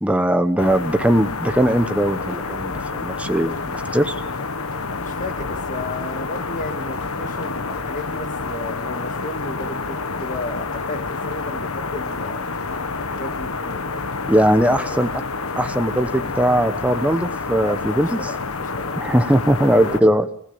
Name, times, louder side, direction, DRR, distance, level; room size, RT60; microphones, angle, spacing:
voice 1, 0.0-4.2 14.3-15.1 15.6-18.2 19.0-20.3, right 1 dB, 5° right, 9 dB, 0.9 m, -19 dB
sound 1, 0.6-20.0, left 4 dB, 90° left, 1.5 m, -28 dB
voice 2, 4.9-12.4 13.0-14.2 14.7-15.1 17.6-19.0 19.6-20.0, left 1 dB, 35° left, 7 dB, 2.3 m, -34 dB
26.0 x 16.5 x 8.7 m, 0.64 s
head